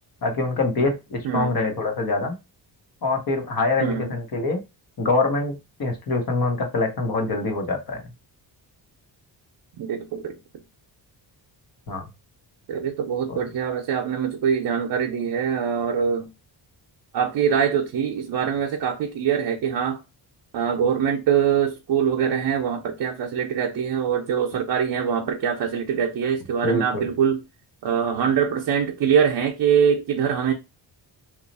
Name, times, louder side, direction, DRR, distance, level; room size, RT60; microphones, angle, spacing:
voice 1, 0.2-2.4 3.0-4.6 5.0-8.0 11.9-12.0 13.3-13.4 26.6-27.1, left 3 dB, 55° left, 1.0 m, -24 dB
voice 2, 1.2-1.6 3.8-4.2 9.8-10.4 12.7-16.3 17.1-20.0 20.5-27.4 27.8-30.5, right 7 dB, 60° right, 0.6 m, -23 dB
3.0 x 2.4 x 3.9 m
wide cardioid pair, 145°, 43 cm